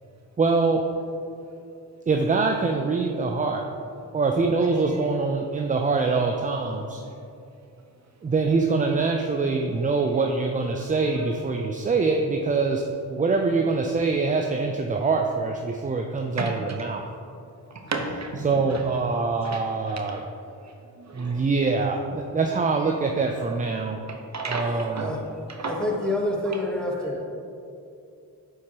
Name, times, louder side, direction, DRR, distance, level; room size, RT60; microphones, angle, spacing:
voice 1, 0.4-0.8 2.1-3.6 4.1-7.0 8.2-12.8 13.1-17.0 18.4-20.2 21.1-24.0 24.5-25.1, right 4 dB, 20° right, 3 dB, 0.4 m, -24 dB
voice 2, 16.4-16.8 17.7-18.4 19.4-20.2 21.0-21.4 22.3-22.4 24.1-25.1 25.6-25.8 26.0-26.1 27.1-27.2, right 3 dB, 40° right, 2 dB, 0.9 m, -34 dB
voice 3, 25.6-27.3, left 1 dB, ahead, -1 dB, 1.2 m, -27 dB
8.1 x 4.7 x 2.9 m, 2.5 s
supercardioid pair, 55°, 42 cm